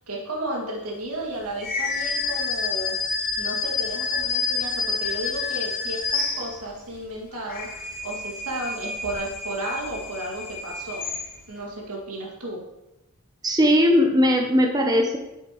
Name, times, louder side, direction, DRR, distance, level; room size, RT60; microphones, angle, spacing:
voice 1, 0.0-3.0 3.4-11.1 11.5-12.6, right 1 dB, 80° right, -2 dB, 2.1 m, -33 dB
sound 1, 1.6-6.9 7.3-11.6, left 4 dB, 40° left, 1.2 m, -29 dB
voice 2, 13.4-15.2, equal, 15° right, 2 dB, 0.6 m, -19 dB
8.2 x 6.9 x 3.0 m, 0.95 s
head